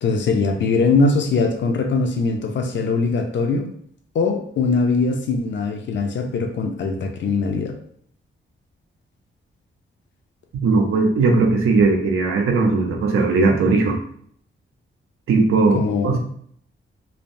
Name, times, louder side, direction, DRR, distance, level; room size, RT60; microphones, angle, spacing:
voice 1, 0.0-3.7 4.1-7.7 15.7-16.2, left 4 dB, 60° left, 4 dB, 0.5 m, -21 dB
voice 2, 10.6-14.0 15.3-16.2, right 3 dB, 85° right, 2 dB, 0.6 m, -18 dB
3.2 x 2.0 x 2.5 m, 0.63 s
wide cardioid pair, 155°, 21 cm